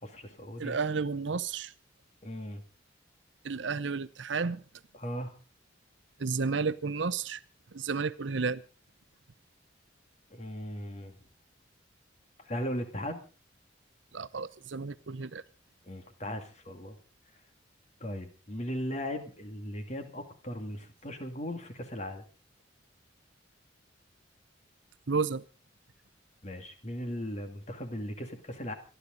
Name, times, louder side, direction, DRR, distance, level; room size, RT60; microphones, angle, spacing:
voice 1, 0.0-0.8 2.2-2.6 4.9-5.3 10.3-11.1 12.4-13.2 15.8-17.0 18.0-22.2 26.4-28.7, equal, 35° left, 6 dB, 2.3 m, -38 dB
voice 2, 0.6-1.7 3.4-4.6 6.2-7.4 7.7-8.6 14.1-15.4 25.1-25.4, right 4 dB, 70° right, 16 dB, 0.7 m, -32 dB
27.0 x 11.5 x 3.9 m, 0.35 s
head